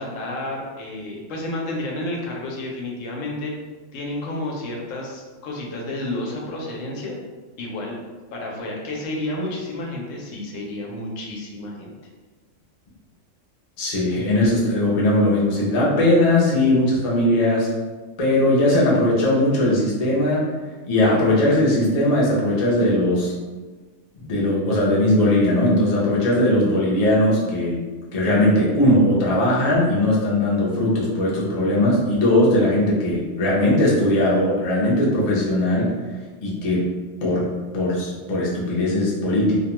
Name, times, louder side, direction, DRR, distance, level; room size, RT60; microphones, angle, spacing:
voice 1, 0.0-3.5 3.9-7.2 7.6-8.0 8.3-11.9, left 1 dB, 85° left, -1 dB, 1.0 m, -30 dB
voice 2, 13.8-17.7 18.2-20.5 20.9-23.3 24.2-27.8 28.1-35.9 36.4-36.9 37.2-39.6, left 1 dB, 40° left, -5 dB, 0.6 m, -19 dB
2.5 x 2.2 x 2.9 m, 1.3 s
omnidirectional pair, 1.3 m